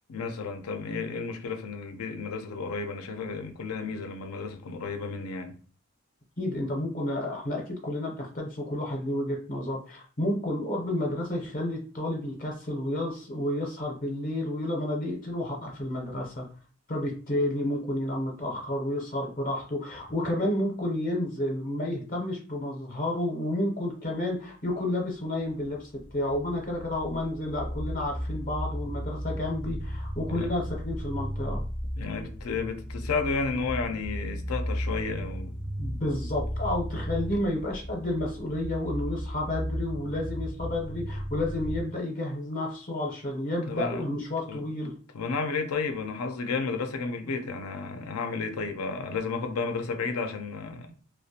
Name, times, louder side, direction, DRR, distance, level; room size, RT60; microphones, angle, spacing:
voice 1, 0.1-5.6 30.3-30.5 32.0-35.6 43.6-44.2 44.5-44.6 45.1-50.9, left 4 dB, 85° left, 0.4 m, -32 dB
voice 2, 6.4-16.4 16.9-31.6 35.8-44.9, left 1 dB, 40° left, 0.6 m, -31 dB
sound 1, 25.8-41.8, equal, 15° right, 0.3 m, -35 dB
2.4 x 2.1 x 2.6 m
head